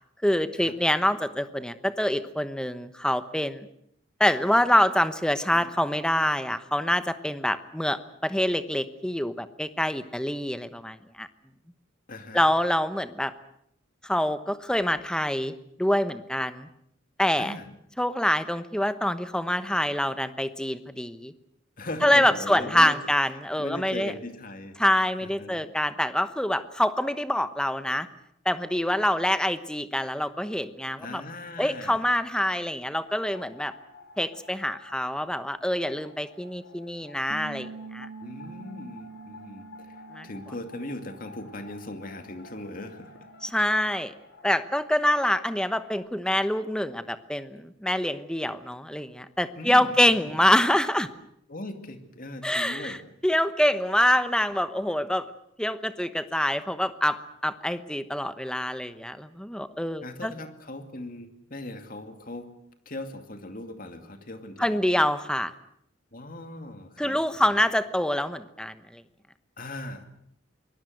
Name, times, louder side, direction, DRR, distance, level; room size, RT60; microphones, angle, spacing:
voice 1, 0.2-3.7 4.2-11.3 12.3-13.3 14.0-15.5 15.8-16.7 17.2-17.6 18.0-21.3 22.0-24.1 24.8-28.1 28.4-31.2 31.6-33.7 34.2-38.1 40.1-40.3 43.4-44.1 44.4-51.1 52.4-53.0 53.2-55.3 55.6-60.3 64.6-65.5 67.0-69.0, left 1 dB, 5° left, 12 dB, 1.0 m, -25 dB
voice 2, 12.1-12.4 17.4-17.7 21.8-23.0 23.6-24.8 25.2-25.7 31.0-32.1 38.2-40.0 40.2-43.2 49.6-50.3 51.5-53.0 60.0-62.5 62.9-64.8 66.1-67.6 69.6-70.0, left 1 dB, 45° left, 7 dB, 2.5 m, -39 dB
sound 1, 33.0-45.9, left 3 dB, 65° left, 7.8 m, -51 dB
Bass guitar, 37.3-43.5, right 4 dB, 85° right, 2.1 m, -46 dB
25.0 x 21.0 x 7.9 m, 0.74 s
head